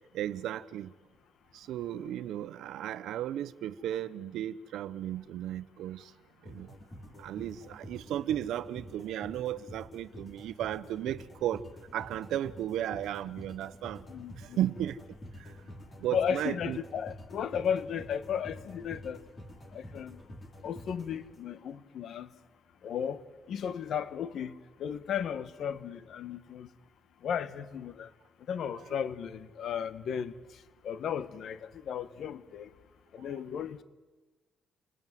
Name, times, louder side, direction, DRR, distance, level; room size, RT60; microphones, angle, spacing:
voice 1, 0.1-0.9 1.5-6.1 6.4-6.8 7.1-11.6 11.9-14.1 14.3-15.0 15.4-15.6 16.0-16.8 28.7-28.8 33.2-33.3, right 12 dB, 80° right, 0.9 m, -35 dB
sound 1, 6.4-21.7, left 1 dB, 30° left, 6.0 m, -48 dB
voice 2, 14.1-14.6 16.1-19.2 19.7-20.2 20.6-22.3 22.8-23.2 23.5-24.5 24.8-26.7 27.2-28.1 28.5-30.3 30.8-32.7 33.1-33.8, left 8 dB, 65° left, 1.5 m, -35 dB
29.0 x 20.0 x 9.3 m
cardioid pair, 90°, 0 cm